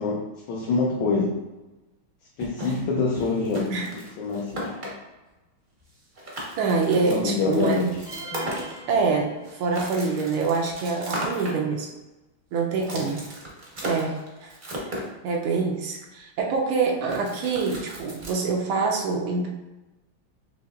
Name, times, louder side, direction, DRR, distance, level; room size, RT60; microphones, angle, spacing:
voice 1, 0.0-1.4 2.4-4.9 7.1-8.0 12.8-13.1, left 4 dB, 75° left, -3 dB, 1.4 m, -26 dB
sound 1, 2.4-4.9 5.8-5.9 6.1-9.0 9.4-11.5 12.8-15.1 17.1-18.3, equal, 40° right, 0.6 m, -36 dB
voice 2, 6.6-7.8 8.9-9.3 9.6-11.9 12.5-13.3 13.8-14.5 15.2-19.5, right 4 dB, 85° right, -1 dB, 1.6 m, -25 dB
sound 2, 8.1-9.9, right 1 dB, 30° left, 0.7 m, -39 dB
5.8 x 3.0 x 2.4 m, 1.1 s
omnidirectional pair, 2.3 m